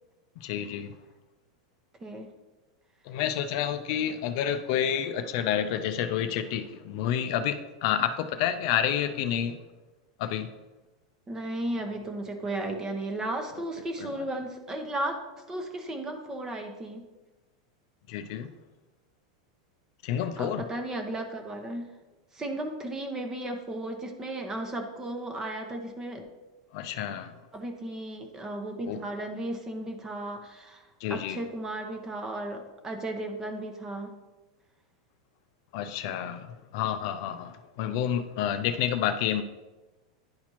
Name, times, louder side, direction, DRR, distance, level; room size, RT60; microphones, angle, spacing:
voice 1, 0.4-0.9 3.1-9.6 10.2-10.5 18.1-18.5 20.0-20.6 26.7-27.3 28.9-29.0 31.0-31.4 35.7-36.5 36.7-39.4, left 9 dB, 55° left, 9 dB, 0.4 m, -29 dB
voice 2, 11.3-15.2 15.5-17.0 20.1-21.9 22.3-26.2 27.5-34.1, right 1 dB, 15° right, 5 dB, 0.8 m, -35 dB
10.5 x 4.2 x 3.0 m, 1.1 s
supercardioid pair, 145°, 3 cm